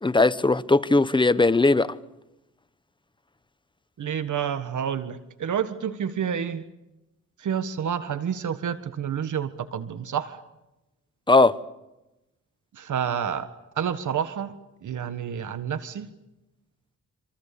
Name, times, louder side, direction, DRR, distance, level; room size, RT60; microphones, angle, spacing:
voice 1, 0.0-1.9 11.3-11.6, left 3 dB, 15° left, 1.1 m, -19 dB
voice 2, 4.0-6.6 7.4-10.4 12.7-13.5 13.8-14.5 14.8-16.1, right 8 dB, 70° right, 1.6 m, -29 dB
26.5 x 26.5 x 6.9 m
cardioid pair, 90°, 31 cm